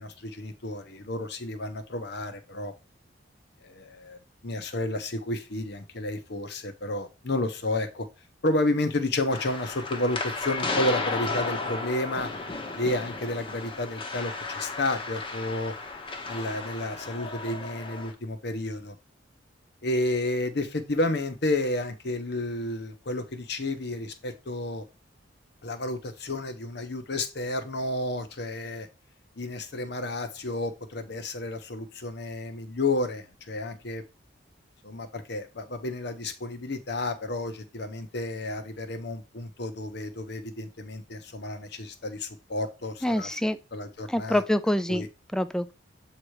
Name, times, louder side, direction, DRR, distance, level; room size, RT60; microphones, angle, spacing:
voice 1, 0.0-2.7 3.6-4.2 4.4-8.1 8.4-12.3 12.8-15.7 16.3-19.0 19.8-24.8 25.6-28.9 29.4-34.0 34.8-43.3 43.7-44.4 44.9-45.1, left 2 dB, 60° left, 1.0 m, -31 dB
sound 1, 9.3-18.1, left 3 dB, 30° left, 0.9 m, -34 dB
voice 2, 43.0-43.6 44.1-45.1 45.3-45.7, left 1 dB, 5° left, 0.3 m, -26 dB
7.6 x 3.0 x 4.7 m
head